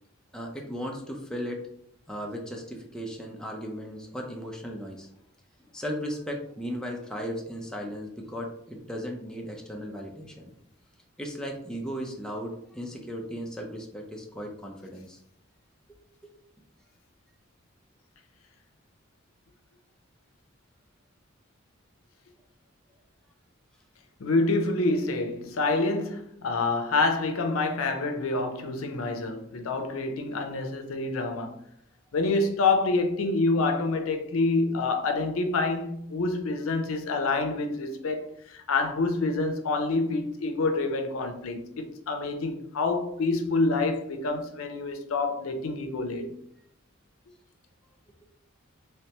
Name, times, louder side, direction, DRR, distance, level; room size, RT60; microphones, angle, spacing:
voice 1, 0.3-1.6 2.1-5.1 5.7-10.5 11.2-15.2 16.2-16.3, equal, 5° left, 0.5 m, -36 dB
voice 2, 24.2-31.6 32.1-46.3, left 3 dB, 85° left, 0.5 m, -27 dB
3.3 x 3.2 x 2.9 m
head